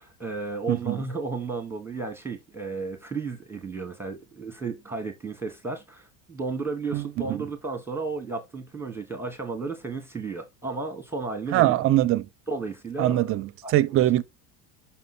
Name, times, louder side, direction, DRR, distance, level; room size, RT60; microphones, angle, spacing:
voice 1, 0.0-11.8 12.5-13.4 13.6-14.0, right 4 dB, 5° right, 0.9 m, -33 dB
voice 2, 0.7-1.0 6.9-7.4 11.5-12.3 13.0-14.2, right 14 dB, 30° right, 0.5 m, -23 dB
5.8 x 5.4 x 5.8 m
cardioid pair, 155°, 44 cm